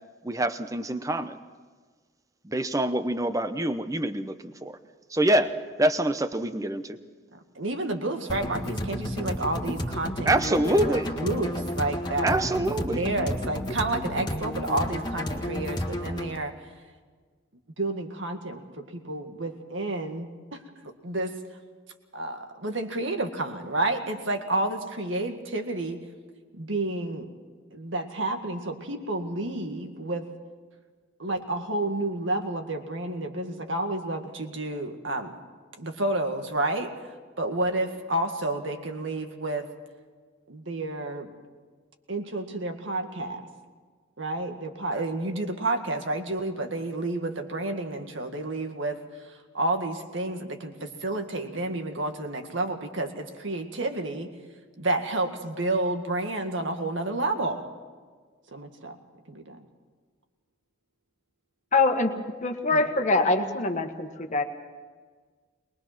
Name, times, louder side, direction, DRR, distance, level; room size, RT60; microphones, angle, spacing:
voice 1, 0.2-1.4 2.4-4.8 5.1-5.5 5.8-7.0 10.3-11.1 12.2-13.0, right 1 dB, 15° right, 10 dB, 0.8 m, -25 dB
voice 2, 7.3-12.4 12.9-16.5 17.8-20.6 21.0-21.4 22.1-26.0 26.5-27.3 27.7-30.3 31.2-35.3 35.8-36.9 37.4-39.7 40.5-41.3 42.1-43.5 44.2-54.3 54.8-57.7 58.5-59.0 59.3-59.7 62.7-62.9, right 2 dB, 65° right, 5 dB, 2.0 m, -30 dB
sound 1, 8.3-16.3, equal, 20° left, 1.7 m, -32 dB
voice 3, 61.7-64.4, left 3 dB, 35° left, 6 dB, 1.5 m, -24 dB
22.5 x 20.5 x 6.0 m, 1.5 s
head